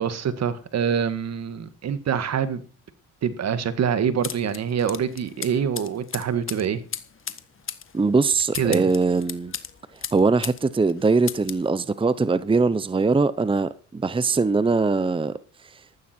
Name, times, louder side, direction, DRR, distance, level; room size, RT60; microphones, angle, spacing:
voice 1, 0.0-2.6 3.2-6.8 8.5-8.9, right 7 dB, 60° right, 1.8 m, -25 dB
sound 1, 4.2-10.6 10.9-11.7, left 7 dB, 45° left, 1.5 m, -36 dB
voice 2, 7.9-9.5 10.1-15.3, right 4 dB, 15° right, 0.8 m, -21 dB
14.5 x 12.5 x 4.5 m
cardioid pair, 90°, 30 cm